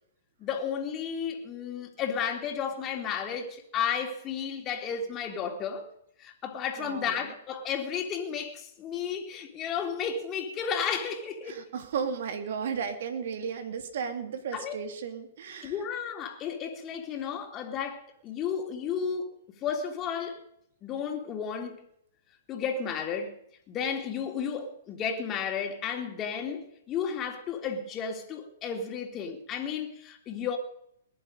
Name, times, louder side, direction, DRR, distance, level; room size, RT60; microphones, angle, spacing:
voice 1, 0.4-5.9 6.2-11.7 14.5-14.8 15.6-19.3 19.6-20.4 20.8-21.8 22.5-23.3 23.7-30.6, left 7 dB, 30° left, 3.2 m, -33 dB
voice 2, 6.8-7.1 11.5-15.7, right 6 dB, 65° right, 2.8 m, -34 dB
20.5 x 11.0 x 5.2 m
hypercardioid pair, 125°, 0 cm